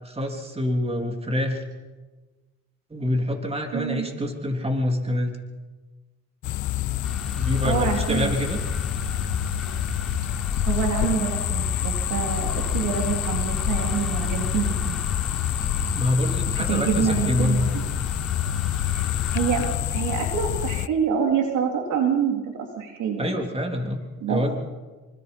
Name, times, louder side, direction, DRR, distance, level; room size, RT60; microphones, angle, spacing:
voice 1, 0.0-1.6 2.9-5.4 7.4-8.6 15.9-17.7 23.2-24.0 24.3-24.6, left 1 dB, 20° right, 3 dB, 3.4 m, -26 dB
voice 2, 3.7-4.1 7.6-8.3 10.7-15.0 16.6-17.8 18.9-19.0 19.3-19.7 19.9-23.4 24.2-24.4, right 7 dB, 85° right, 2 dB, 3.7 m, -26 dB
sound 1, 6.4-20.9, left 14 dB, 75° left, 0.7 m, -27 dB
sound 2, 7.0-19.8, left 1 dB, ahead, 4.1 m, -33 dB
26.5 x 25.0 x 5.5 m, 1.3 s
cardioid pair, 90°, 30 cm